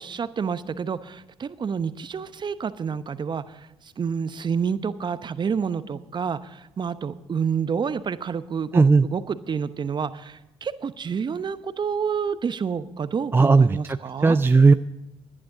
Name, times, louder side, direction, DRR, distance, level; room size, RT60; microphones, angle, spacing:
voice 1, 0.0-3.7 4.0-14.4, right 6 dB, 35° right, 13 dB, 0.9 m, -29 dB
voice 2, 8.7-9.1 13.3-14.0 14.2-14.7, right 4 dB, 15° right, 12 dB, 0.4 m, -16 dB
17.5 x 11.0 x 3.9 m, 0.96 s
hypercardioid pair, 50°, 13 cm